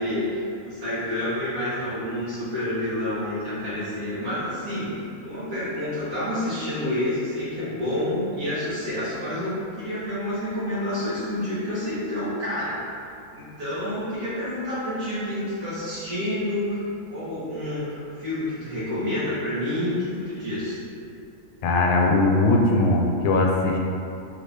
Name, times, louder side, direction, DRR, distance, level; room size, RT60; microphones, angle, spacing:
voice 1, 0.0-4.9 5.2-12.8 13.3-16.8 17.1-20.8, left 1 dB, 60° right, -11 dB, 1.9 m, -28 dB
voice 2, 21.6-23.8, left 2 dB, 90° left, 1 dB, 1.1 m, -20 dB
4.4 x 2.7 x 3.3 m, 2.6 s
omnidirectional pair, 1.6 m